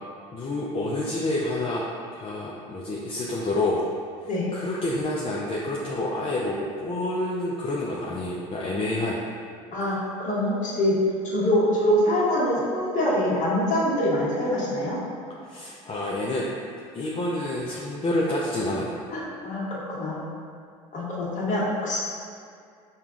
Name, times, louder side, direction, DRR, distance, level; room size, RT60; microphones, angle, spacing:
voice 1, 0.3-1.9 2.1-3.8 4.5-9.2 15.5-16.5 16.9-19.0, left 1 dB, 35° left, -4 dB, 0.6 m, -28 dB
voice 2, 9.7-11.0 11.2-15.0 19.1-20.2 20.9-22.0, left 1 dB, 50° left, -6 dB, 1.4 m, -24 dB
5.4 x 2.4 x 3.7 m, 2.2 s
hypercardioid pair, 75°, 17 cm